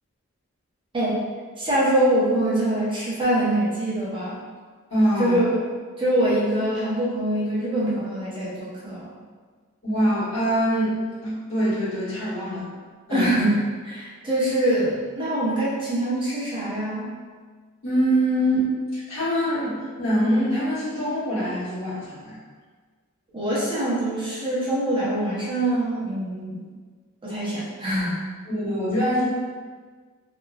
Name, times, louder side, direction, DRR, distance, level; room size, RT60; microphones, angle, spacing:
voice 1, 0.9-1.2 1.6-4.4 5.2-5.6 6.0-9.1 13.1-17.1 23.3-26.6 27.2-28.2, right 1 dB, 25° right, -8 dB, 0.8 m, -24 dB
voice 2, 4.9-5.4 9.8-10.9 11.2-12.7 13.1-13.3 17.8-22.4 28.5-29.2, equal, 70° left, -11 dB, 1.3 m, -24 dB
2.9 x 2.2 x 2.3 m, 1.5 s
head